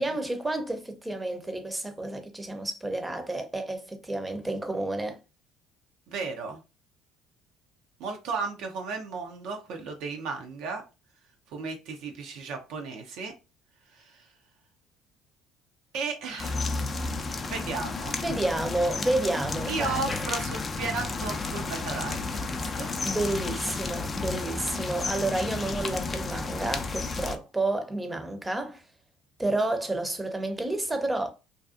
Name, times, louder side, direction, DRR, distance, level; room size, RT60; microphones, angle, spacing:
voice 1, 0.0-5.2 18.2-20.3 23.0-28.8 29.4-31.3, right 2 dB, 15° right, 0.6 m, -30 dB
voice 2, 6.1-6.6 8.0-10.8 11.5-13.3 13.9-14.3 15.9-16.7 17.4-18.2 19.7-22.9, right 4 dB, 70° right, 0.5 m, -34 dB
sound 1, 16.4-27.4, left 3 dB, 35° left, 0.4 m, -32 dB
2.5 x 2.3 x 2.4 m
hypercardioid pair, 65°, 0 cm